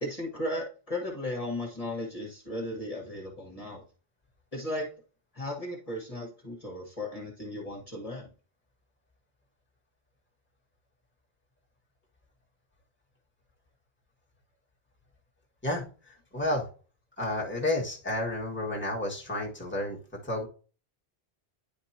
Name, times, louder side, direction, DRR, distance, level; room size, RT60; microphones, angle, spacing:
voice 1, 0.0-3.8 4.5-4.9 5.3-8.3, left 1 dB, 35° left, -1 dB, 1.8 m, -35 dB
voice 2, 15.6-16.7 17.2-20.5, left 1 dB, 10° left, -3 dB, 1.9 m, -31 dB
10.0 x 5.2 x 2.9 m, 0.36 s
omnidirectional pair, 1.1 m